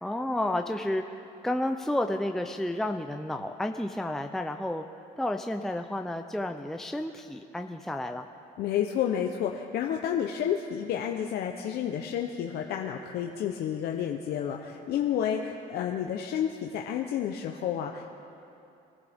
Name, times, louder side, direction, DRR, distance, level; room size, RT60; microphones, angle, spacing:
voice 1, 0.0-4.8 5.2-8.2, left 1 dB, ahead, 5 dB, 0.5 m, -31 dB
voice 2, 8.6-18.1, left 9 dB, 70° left, 2 dB, 0.8 m, -30 dB
24.5 x 14.5 x 3.6 m, 2.7 s
cardioid pair, 110°, 17 cm